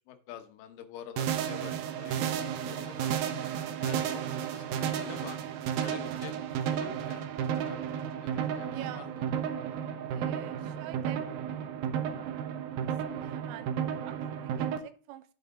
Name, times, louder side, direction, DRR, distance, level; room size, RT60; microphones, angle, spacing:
voice 1, 0.0-2.2 2.6-3.1 3.8-4.2 4.5-5.4 5.8-6.4 6.7-7.8 8.2-9.2, left 9 dB, 85° left, 8 dB, 3.7 m, -47 dB
sound 1, 1.2-14.8, right 8 dB, 70° right, 2.3 m, -33 dB
voice 2, 8.7-9.1 10.1-11.3 13.1-15.3, right 13 dB, 90° right, 11 dB, 3.4 m, -47 dB
9.1 x 8.4 x 3.8 m, 0.40 s
omnidirectional pair, 5.6 m